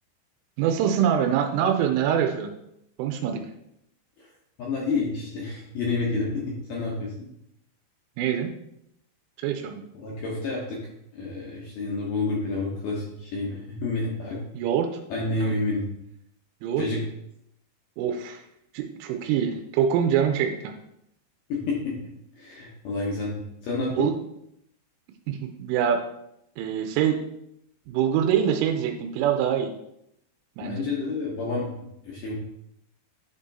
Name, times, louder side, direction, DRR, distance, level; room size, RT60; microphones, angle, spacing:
voice 1, 0.6-2.5 3.0-3.4 8.2-8.5 9.4-9.8 14.5-14.9 15.4-15.5 16.6-16.8 18.0-18.4 18.7-20.7 24.0-24.1 25.3-26.0 26.6-27.2 27.9-29.7 30.6-30.9, right 9 dB, 90° right, 4 dB, 3.2 m, -24 dB
voice 2, 4.6-6.4 6.7-7.1 9.9-10.8 11.1-14.4 15.1-15.8 16.8-17.0 21.5-22.0 22.4-24.1 30.6-32.4, left 3 dB, 75° left, -4 dB, 2.0 m, -29 dB
10.5 x 3.7 x 4.1 m, 0.78 s
omnidirectional pair, 5.5 m